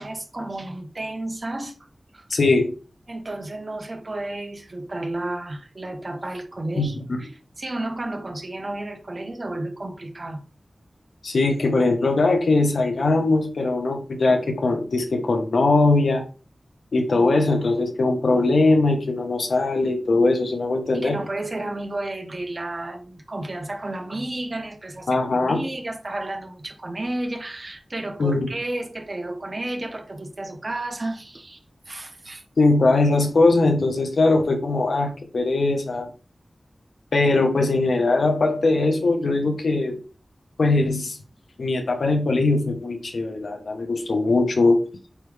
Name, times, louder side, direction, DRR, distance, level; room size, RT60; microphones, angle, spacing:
voice 1, 0.0-1.8 2.1-2.4 3.1-7.3 7.6-10.5 20.9-31.6 31.9-32.4, right 2 dB, 45° right, 1.2 m, -32 dB
voice 2, 2.3-2.7 6.8-7.2 11.2-16.2 16.9-21.2 25.1-25.6 28.2-28.5 32.6-36.1 37.1-40.0 40.6-41.2 41.6-44.8, left 2 dB, 85° left, 1.3 m, -20 dB
8.6 x 3.4 x 3.4 m
wide cardioid pair, 75°, 0 cm